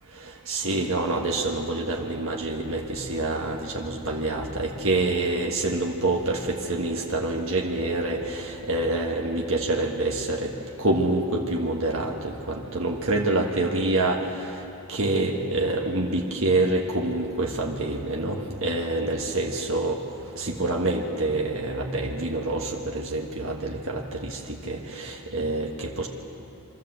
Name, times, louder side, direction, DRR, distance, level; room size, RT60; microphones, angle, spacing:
voice 1, 0.5-10.5 10.8-14.2 14.9-20.0 20.4-24.4 24.7-26.1, right 2 dB, 65° right, 0 dB, 1.6 m, -26 dB
25.0 x 13.5 x 8.0 m, 2.9 s
head